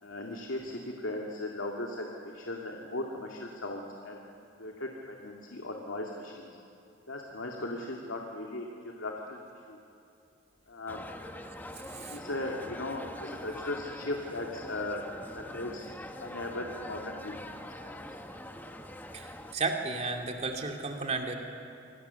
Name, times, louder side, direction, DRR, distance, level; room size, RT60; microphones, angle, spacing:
voice 1, 0.0-4.2 4.6-6.5 7.1-9.4 9.7-9.8 10.7-11.1 12.1-15.0 15.3-15.9 16.2-17.5 17.8-18.0, left 2 dB, 80° left, 1 dB, 2.3 m, -37 dB
sound 1, 10.9-19.5, left 1 dB, 10° left, 1.2 m, -44 dB
voice 2, 19.5-21.3, right 3 dB, 35° right, 3 dB, 2.6 m, -32 dB
26.0 x 24.5 x 7.0 m, 2.7 s
head